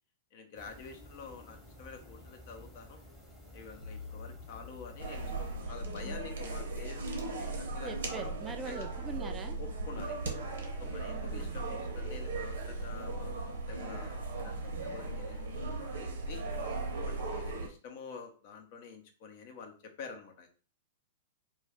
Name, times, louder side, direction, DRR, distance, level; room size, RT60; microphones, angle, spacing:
voice 1, 0.3-3.0 3.5-8.4 8.6-8.9 9.6-10.3 10.8-16.4 17.0-20.5, left 5 dB, 50° left, 5 dB, 0.6 m, -48 dB
sound 1, 0.5-5.6, left 1 dB, 5° left, 0.9 m, -53 dB
sound 2, 3.8-12.9, left 4 dB, 80° left, 1.0 m, -52 dB
sound 3, 5.0-17.7, right 3 dB, 70° right, 0.7 m, -37 dB
voice 2, 7.8-9.6 11.1-11.6, right 5 dB, 20° right, 5 dB, 0.4 m, -42 dB
2.3 x 2.2 x 3.5 m, 0.38 s
hypercardioid pair, 110°, 0 cm